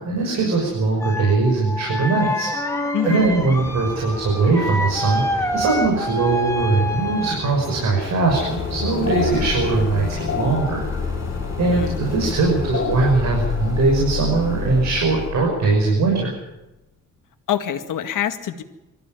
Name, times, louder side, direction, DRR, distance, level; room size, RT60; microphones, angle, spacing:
voice 1, 0.0-10.8 11.6-16.3, right 3 dB, 60° right, -1 dB, 6.2 m, -21 dB
sound 1, 1.0-7.5, equal, 10° left, 2.0 m, -27 dB
voice 2, 2.9-3.4 11.7-12.0 17.5-18.6, left 10 dB, 75° left, 7 dB, 2.0 m, -25 dB
sound 2, 3.2-15.3, equal, 10° right, 4.9 m, -36 dB
sound 3, 8.3-16.2, left 6 dB, 40° left, 3.6 m, -27 dB
24.5 x 14.5 x 9.2 m, 0.99 s
cardioid pair, 165°, 32 cm